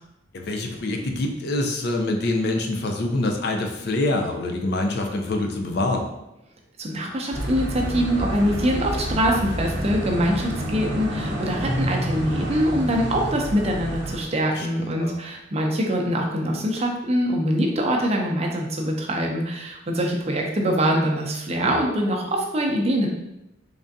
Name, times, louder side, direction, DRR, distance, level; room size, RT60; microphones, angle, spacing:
voice 1, 0.3-6.1 14.5-15.1 21.6-21.8, left 2 dB, 55° left, 3 dB, 0.5 m, -25 dB
voice 2, 6.8-23.1, equal, 35° right, 0 dB, 0.5 m, -24 dB
sound 1, 7.3-14.2, equal, 80° right, 0.9 m, -28 dB
3.7 x 3.3 x 2.6 m, 0.90 s
head